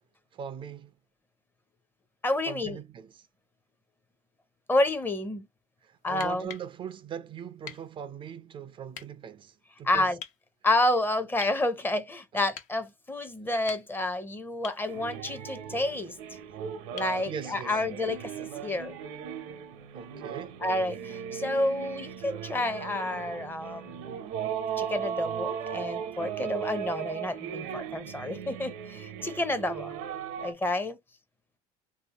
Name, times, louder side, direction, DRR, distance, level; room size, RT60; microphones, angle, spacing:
voice 1, 0.3-0.9 2.4-3.3 5.8-10.2 12.3-12.5 17.2-17.8 19.9-20.6, right 8 dB, 40° right, 0.4 m, -41 dB
voice 2, 2.2-2.8 4.7-5.5 6.0-6.5 9.8-10.2 10.6-16.2 16.9-19.0 20.6-24.2 24.8-29.9 30.4-31.0, left 2 dB, 15° left, 0.6 m, -29 dB
sound 1, 6.1-6.7 7.6-7.9 8.9-9.1 10.2-10.4 11.4-11.6 12.5-12.8 13.5-14.1 14.6-14.9 17.0-17.2 19.0-19.1, left 8 dB, 65° left, 0.8 m, -44 dB
sound 2, 14.9-30.5, right 8 dB, 80° right, 0.7 m, -37 dB
3.1 x 2.7 x 2.8 m
supercardioid pair, 100°, 14 cm